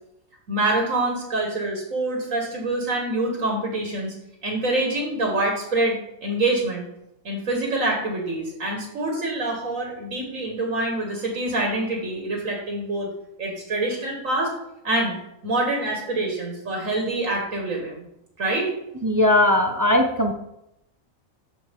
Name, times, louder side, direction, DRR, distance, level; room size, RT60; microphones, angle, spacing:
voice 1, 0.5-4.2 4.4-6.8 7.2-13.1 13.4-14.5 14.8-15.2 15.4-18.0 18.4-18.7, right 2 dB, 70° right, 0 dB, 1.9 m, -25 dB
voice 2, 19.0-20.3, left 1 dB, 25° right, 4 dB, 0.4 m, -19 dB
14.0 x 4.9 x 3.6 m, 0.84 s
omnidirectional pair, 1.4 m